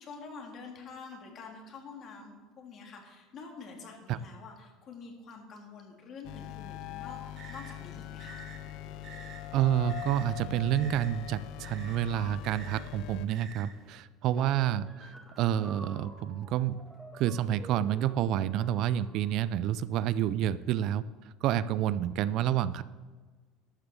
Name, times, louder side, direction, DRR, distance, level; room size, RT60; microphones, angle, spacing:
voice 1, 0.0-7.2 7.5-8.4, left 4 dB, 45° left, 1 dB, 3.0 m, -47 dB
sound 1, 6.2-13.3, left 16 dB, 65° left, 0.4 m, -42 dB
sound 2, 6.9-13.9, right 5 dB, 45° right, 3.0 m, -50 dB
voice 2, 9.5-16.8 17.1-21.0 21.4-22.8, right 11 dB, 60° right, 16 dB, 0.5 m, -29 dB
sound 3, 14.3-19.6, right 1 dB, 5° right, 2.2 m, -50 dB
12.5 x 6.9 x 6.8 m, 1.4 s
supercardioid pair, 100°, 0 cm